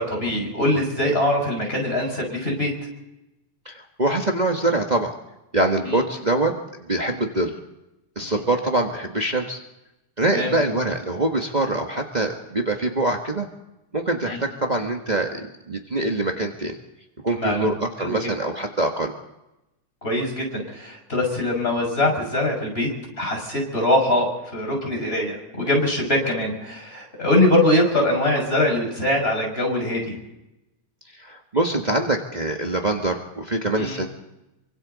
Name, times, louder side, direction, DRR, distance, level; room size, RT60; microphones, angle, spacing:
voice 1, 0.0-2.7 5.9-6.0 8.3-8.4 10.3-10.5 14.3-14.4 17.3-17.7 18.0-18.2 20.0-22.9 23.2-30.1 33.8-34.0, left 1 dB, 20° left, 1 dB, 6.4 m, -22 dB
voice 2, 3.6-5.1 5.5-7.5 8.1-9.6 10.2-13.5 13.9-16.8 17.2-19.1 31.1-34.1, right 2 dB, 55° right, 1 dB, 0.4 m, -24 dB
27.5 x 24.5 x 4.0 m, 0.94 s
omnidirectional pair, 3.4 m